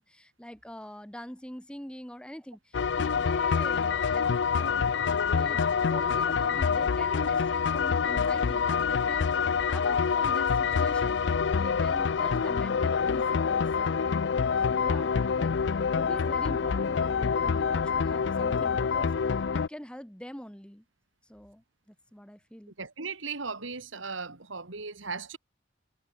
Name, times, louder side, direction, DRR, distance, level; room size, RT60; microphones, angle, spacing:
voice 1, 0.0-4.3 4.5-4.9 5.2-14.0 14.7-15.5 15.9-20.8 21.3-22.7, equal, 5° left, 1.5 m, -44 dB
sound 1, 2.7-19.7, left 6 dB, 65° left, 0.4 m, -26 dB
Liquid, 6.4-6.6 7.2-7.6 8.2-8.5 9.1-9.4 10.0-10.3 11.0-11.3 12.0-12.2 12.9-13.3 13.7-14.0, left 2 dB, 25° left, 2.7 m, -54 dB
voice 2, 22.8-25.4, right 4 dB, 90° right, 2.7 m, -37 dB
head